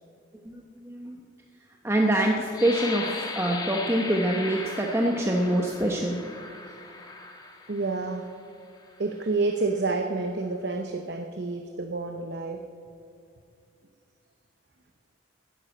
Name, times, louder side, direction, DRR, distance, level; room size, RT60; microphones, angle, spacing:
voice 1, 0.4-1.2 1.8-6.2 6.7-6.8, right 1 dB, 15° right, 0 dB, 0.8 m, -25 dB
sound 1, 2.5-8.2 8.8-9.0 9.5-9.9, left 3 dB, 20° left, 1.2 m, -37 dB
voice 2, 7.7-8.3 9.0-12.6, right 3 dB, 60° right, 5 dB, 0.8 m, -29 dB
11.0 x 10.5 x 9.0 m, 2.3 s
head